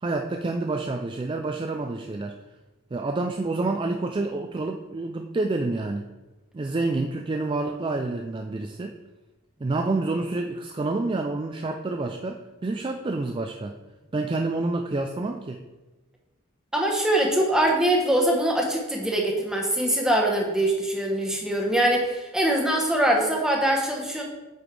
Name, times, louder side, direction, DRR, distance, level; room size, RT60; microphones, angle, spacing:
voice 1, 0.0-2.4 2.9-6.0 6.5-8.9 9.6-13.7 14.1-15.6, right 2 dB, 25° right, 4 dB, 0.3 m, -28 dB
voice 2, 16.7-24.2, right 1 dB, 5° right, -1 dB, 1.0 m, -23 dB
8.6 x 5.0 x 3.3 m, 1.1 s
head